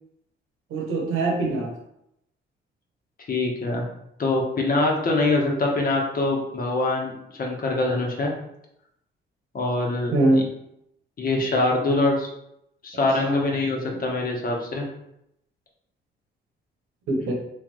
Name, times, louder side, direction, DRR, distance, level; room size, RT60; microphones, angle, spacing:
voice 1, 0.7-1.7 10.1-10.5 12.9-13.4 17.1-17.3, right 2 dB, 90° right, 0 dB, 1.2 m, -23 dB
voice 2, 3.3-3.8 4.2-8.3 9.5-10.2 11.2-12.3 12.8-14.8, left 2 dB, 45° left, 0 dB, 1.2 m, -24 dB
3.9 x 3.3 x 3.1 m, 0.79 s
cardioid pair, 90°, 20 cm